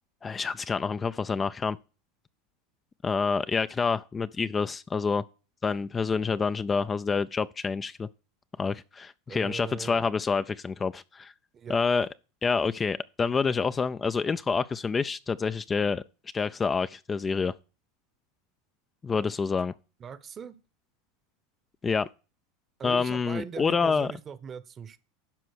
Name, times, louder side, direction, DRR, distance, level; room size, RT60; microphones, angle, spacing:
voice 1, 0.2-1.8 3.0-5.2 5.6-8.1 8.6-11.3 11.7-12.1 12.4-16.0 16.3-17.5 19.0-19.7 21.8-22.1 22.8-24.1, left 5 dB, 25° left, 0.4 m, -27 dB
voice 2, 9.3-10.1 11.5-11.8 20.0-20.6 22.8-25.0, right 7 dB, 30° right, 0.9 m, -40 dB
11.5 x 4.6 x 6.2 m
hypercardioid pair, 95°, 0 cm